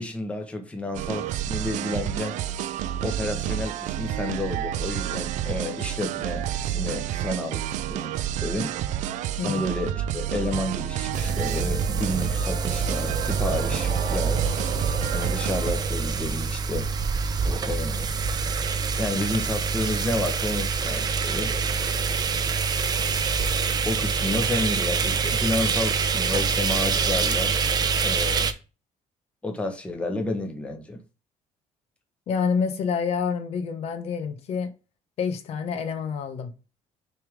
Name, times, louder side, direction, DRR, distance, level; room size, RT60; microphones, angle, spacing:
voice 1, 0.0-2.4 3.0-7.6 7.9-8.7 9.4-14.5 15.1-16.9 17.7-18.1 19.0-21.5 23.8-27.5 28.0-28.5 29.4-31.0, left 2 dB, 10° left, 1.2 m, -31 dB
sound 1, 0.9-15.7, right 11 dB, 70° right, 0.5 m, -30 dB
sound 2, 11.1-28.5, right 5 dB, 30° right, 0.8 m, -26 dB
voice 2, 32.3-34.7 35.2-36.5, left 6 dB, 55° left, 1.2 m, -27 dB
6.7 x 3.6 x 5.0 m
cardioid pair, 150°, 13 cm